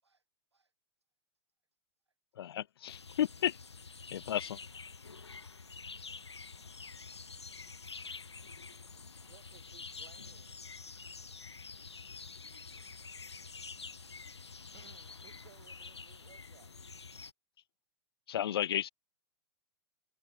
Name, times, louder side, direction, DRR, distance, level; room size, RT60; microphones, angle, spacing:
voice 1, 2.4-3.6 4.1-4.6 18.3-18.9, left 11 dB, 65° left, 0.4 m, -33 dB
sound 1, 2.9-17.3, left 4 dB, 85° left, 1.0 m, -48 dB
voice 2, 5.1-5.5 5.8-7.3 7.6-8.9 10.0-10.1 11.8-12.0, right 4 dB, 80° right, 5.4 m, -79 dB
voice 3, 9.3-10.6 14.7-16.7, right 17 dB, 50° right, 3.5 m, -61 dB
figure-of-eight pair, 100°, 14 cm